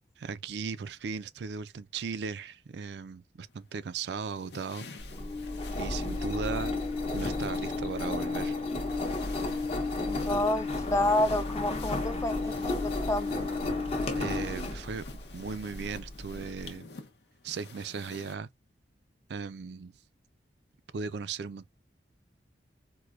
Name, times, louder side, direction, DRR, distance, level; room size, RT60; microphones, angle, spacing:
voice 1, 0.2-4.9 5.8-6.8 7.1-8.5 14.2-15.0 15.3-16.9 17.4-18.5 19.3-19.9 20.9-21.7, right 5 dB, 70° right, 0.4 m, -37 dB
sound 1, 3.4-18.3, left 4 dB, 70° left, 0.7 m, -50 dB
Engine, 5.0-16.7, left 2 dB, 35° left, 0.7 m, -33 dB
voice 2, 10.0-13.5, left 1 dB, 15° left, 0.4 m, -29 dB
4.6 x 2.1 x 2.4 m
head